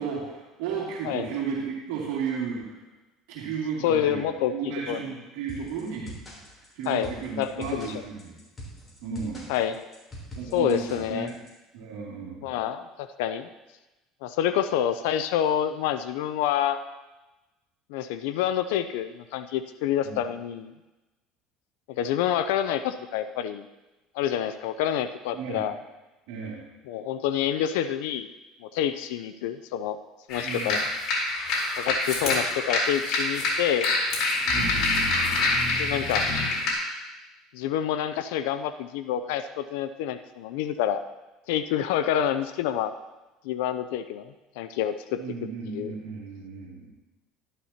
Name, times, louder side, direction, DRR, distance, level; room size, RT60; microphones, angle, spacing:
voice 1, 0.0-2.7 3.3-4.3 4.5-6.1 6.8-8.4 9.0-9.5 10.4-11.3 11.7-12.5 20.0-20.1 25.3-25.7 26.3-26.6 30.4-30.7 34.5-34.8 45.2-46.9, right 6 dB, 80° right, -4 dB, 2.4 m, -34 dB
voice 2, 3.8-5.1 6.9-7.1 7.4-7.9 9.5-9.9 10.5-11.3 12.4-13.5 14.2-16.8 17.9-20.7 21.9-23.7 24.1-25.8 26.9-28.3 28.6-30.0 30.3-30.9 31.8-33.9 35.8-36.3 37.5-41.0 41.5-42.9 43.4-45.2 45.7-46.0, left 10 dB, 85° left, 10 dB, 0.5 m, -28 dB
sound 1, 5.5-11.5, equal, 20° left, 3.5 m, -43 dB
sound 2, 30.3-36.7, left 2 dB, 55° left, 3.9 m, -26 dB
12.0 x 11.0 x 2.9 m, 1.1 s
cardioid pair, 125°, 0 cm